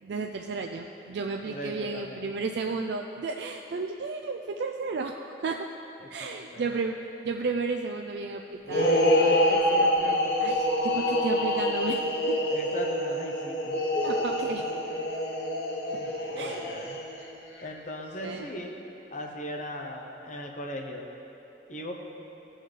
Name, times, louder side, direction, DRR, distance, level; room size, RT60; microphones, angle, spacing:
voice 1, 0.0-5.7 6.1-7.0 7.2-12.4 14.0-14.7 16.4-16.7 18.2-18.4, right 4 dB, 75° right, 2 dB, 0.4 m, -33 dB
voice 2, 1.4-2.3 6.2-6.7 12.5-14.1 15.9-17.0 17.6-18.8 19.1-21.1 21.7-21.9, left 1 dB, 45° left, 1 dB, 1.0 m, -39 dB
sound 1, 8.7-17.2, left 1 dB, 65° left, 1.1 m, -26 dB
15.0 x 6.3 x 3.3 m, 2.9 s
head